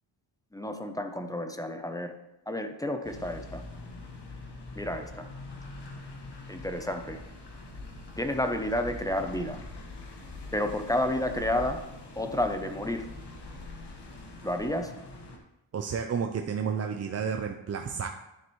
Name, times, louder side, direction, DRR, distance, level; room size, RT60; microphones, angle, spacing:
voice 1, 0.5-2.1 2.5-3.6 4.8-5.3 6.5-7.2 8.2-9.6 10.5-11.8 12.2-13.1 14.4-14.9, left 1 dB, 10° left, 6 dB, 0.6 m, -30 dB
sound 1, 3.0-15.4, left 2 dB, 60° left, 1.6 m, -43 dB
voice 2, 15.7-18.1, right 6 dB, 35° right, 4 dB, 0.5 m, -31 dB
10.5 x 7.6 x 3.1 m, 0.93 s
cardioid pair, 120°, 46 cm